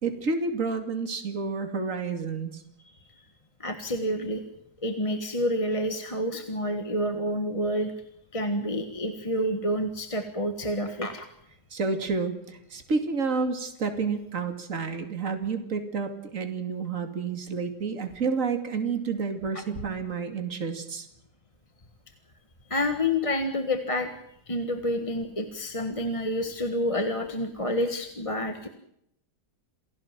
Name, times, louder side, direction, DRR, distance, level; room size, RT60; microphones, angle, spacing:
voice 1, 0.0-2.6 11.7-21.1, right 4 dB, 50° right, 7 dB, 2.8 m, -30 dB
voice 2, 2.8-3.2 3.6-4.4 4.8-7.9 8.3-11.3 22.7-24.1 24.5-28.7, left 1 dB, 20° left, 7 dB, 1.6 m, -28 dB
28.0 x 17.5 x 7.5 m, 0.78 s
omnidirectional pair, 1.8 m